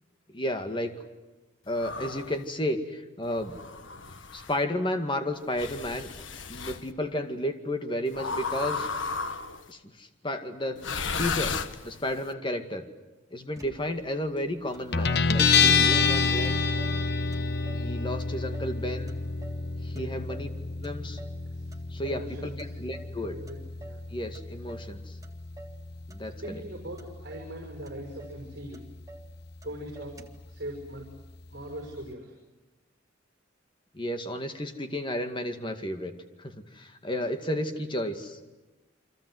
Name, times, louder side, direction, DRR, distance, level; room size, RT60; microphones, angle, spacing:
voice 1, 0.3-1.0 1.7-3.6 4.3-6.1 6.5-8.9 9.7-11.6 11.8-12.8 13.3-16.6 17.7-19.2 19.8-20.5 20.8-21.2 21.9-23.4 24.1-25.2 26.1-26.6 33.9-36.1 36.4-38.4, left 1 dB, 25° left, 7 dB, 2.1 m, -32 dB
sound 1, 1.7-2.4 3.4-4.6 5.5-6.8 8.1-9.7 10.8-12.2, left 4 dB, 80° left, 1.4 m, -34 dB
Motor vehicle (road), 13.5-14.2 14.7-14.8 15.1-16.2 16.4-17.0 17.3-17.9 18.2-19.7 19.9-20.5 20.8-21.4 21.7-22.3 22.6-23.2 23.5-24.1 24.3-24.9 25.2-25.8 26.1-26.7 27.0-27.6 27.9-28.0 28.2-28.4 28.7-29.3 29.6-29.7 29.9-30.5, right 2 dB, 20° right, 1.9 m, -49 dB
Guitar, 14.9-32.1, left 5 dB, 55° left, 1.0 m, -29 dB
voice 2, 19.9-20.2 21.5-21.7 22.0-22.7 23.2-23.6 23.8-24.0 26.4-28.8 29.6-30.2 30.5-31.1 31.5-32.3, right 1 dB, 55° right, 2 dB, 6.2 m, -41 dB
29.0 x 25.0 x 8.0 m, 1.1 s
head